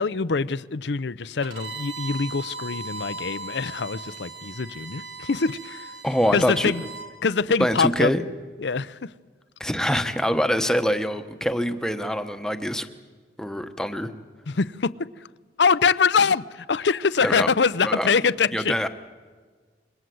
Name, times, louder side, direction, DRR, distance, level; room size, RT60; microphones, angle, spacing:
voice 1, 0.0-5.9 6.3-6.8 7.2-8.1 8.6-9.1 14.5-14.9 15.6-18.7, left 5 dB, 75° left, 18 dB, 0.6 m, -24 dB
Bowed string instrument, 1.4-7.1, right 3 dB, 80° right, 3.8 m, -38 dB
voice 2, 6.0-6.7 7.6-8.2 9.6-12.9 13.4-14.1 17.2-17.5 17.8-18.1 18.5-18.9, equal, 5° left, 8 dB, 1.1 m, -24 dB
27.0 x 23.0 x 7.8 m, 1.5 s
head